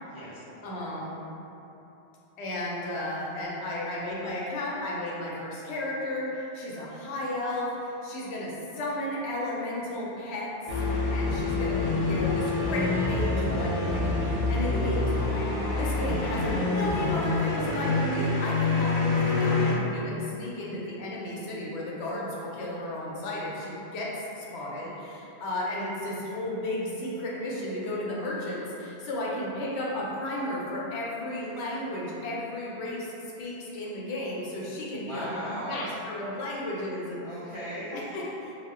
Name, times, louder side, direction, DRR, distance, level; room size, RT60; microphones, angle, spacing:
voice 1, 0.1-0.9 34.9-35.9 37.2-38.0, equal, 50° right, -10 dB, 0.3 m, -38 dB
voice 2, 0.6-1.2 2.4-10.5 10.9-33.1 33.4-37.2 37.9-38.6, left 1 dB, 80° left, -5 dB, 0.8 m, -33 dB
sound 1, 10.7-19.7, left 3 dB, 60° left, 0.4 m, -26 dB
2.1 x 2.1 x 3.5 m, 3.0 s
omnidirectional pair, 1.1 m